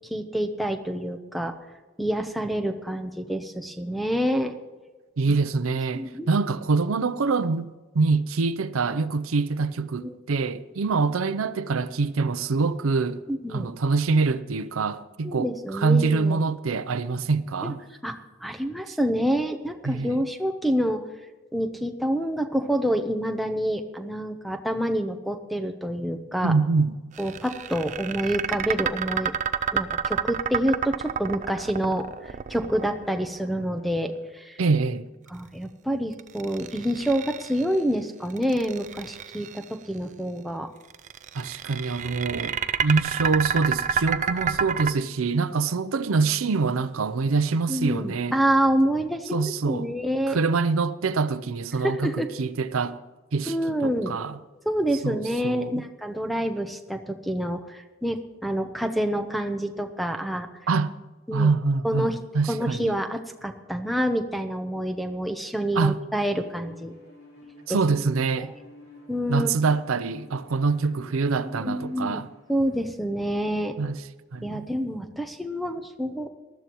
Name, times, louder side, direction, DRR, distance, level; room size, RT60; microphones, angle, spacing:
voice 1, 0.1-1.5 2.0-4.6 5.9-6.4 10.0-10.1 13.3-13.7 15.2-16.4 17.6-17.7 18.0-18.1 18.4-21.1 21.5-26.5 27.2-29.3 29.7-34.6 35.3-40.7 47.7-50.4 51.8-52.3 53.5-54.1 54.6-60.5 61.3-61.5 61.8-62.2 62.5-66.9 67.7-67.8 68.4-68.5 69.1-69.5 71.6-72.2 72.5-73.8 74.4-76.3, equal, ahead, 0.7 m, -27 dB
voice 2, 5.2-13.2 13.5-17.8 19.8-20.2 26.4-27.0 34.6-35.1 41.3-48.4 49.3-49.9 50.3-53.0 53.3-53.5 53.8-54.3 55.0-55.8 60.7-61.0 61.3-62.9 65.8-65.9 67.7-68.5 69.3-72.3 73.8-74.0 74.3-74.7, right 4 dB, 85° right, 0.6 m, -25 dB
sound 1, 27.2-33.4 36.2-37.8 38.3-39.6 40.9-44.9, right 7 dB, 35° right, 0.3 m, -29 dB
Bowed string instrument, 66.4-73.0, left 2 dB, 85° left, 4.4 m, -51 dB
19.5 x 12.5 x 3.0 m
head